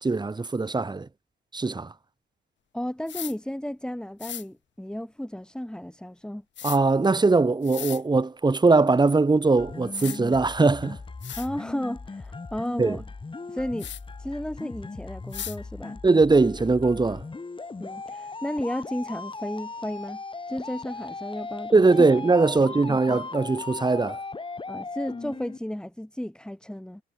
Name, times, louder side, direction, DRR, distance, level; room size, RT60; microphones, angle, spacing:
voice 1, 0.0-1.1 1.5-1.9 6.6-11.0 12.8-13.0 16.0-17.2 21.7-24.2, right 3 dB, 20° right, 2.7 m, -21 dB
voice 2, 2.7-6.4 11.4-13.0 13.5-13.9 14.2-16.0 17.8-20.2 20.5-21.7 22.0-22.1 22.9-23.2 24.7-27.0, left 1 dB, 5° left, 4.8 m, -33 dB
sound 1, 3.1-3.3 4.2-4.4 6.6-6.8 7.6-8.0 9.5-9.6 9.9-10.2 10.8-10.9 11.2-11.5 13.8-14.0 15.3-15.6, left 10 dB, 65° left, 5.3 m, -36 dB
sound 2, 9.6-25.6, left 3 dB, 25° left, 6.2 m, -38 dB
cardioid pair, 90°, 20 cm